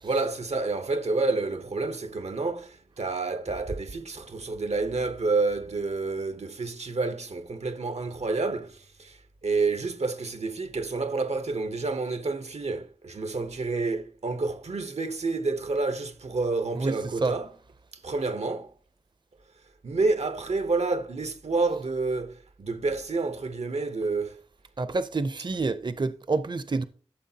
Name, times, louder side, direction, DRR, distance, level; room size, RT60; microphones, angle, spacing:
voice 1, 0.0-17.5 18.0-18.7 19.8-24.4, right 3 dB, 85° right, 0.8 m, -29 dB
voice 2, 16.7-17.3 24.8-26.8, right 3 dB, 45° right, 0.5 m, -28 dB
12.5 x 7.0 x 2.8 m
wide cardioid pair, 55°, 11 cm